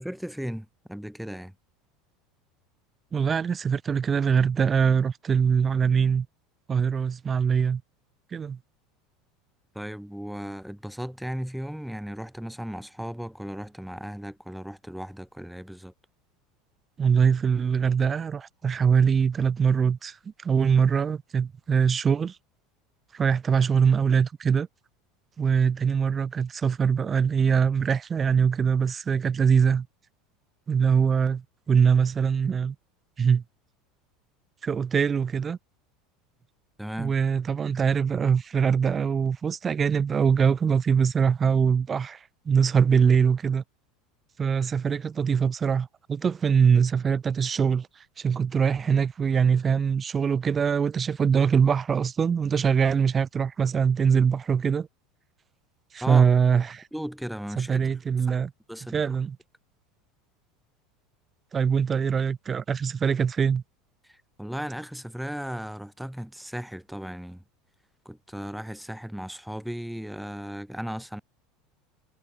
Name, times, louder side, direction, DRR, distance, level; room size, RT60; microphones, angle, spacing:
voice 1, 0.0-1.5 9.7-15.9 36.8-37.1 56.0-56.3 56.9-57.8 58.7-59.2 64.0-67.4 68.0-71.2, equal, ahead, 3.3 m, -36 dB
voice 2, 3.1-6.3 6.7-7.8 8.3-8.6 17.0-22.4 23.1-24.7 25.4-29.9 30.7-32.8 33.2-33.4 34.6-35.6 37.0-43.6 44.4-54.9 55.9-56.9 57.6-58.5 58.9-59.4 61.5-63.6, right 6 dB, 25° right, 0.4 m, -23 dB
supercardioid pair, 105°, 0 cm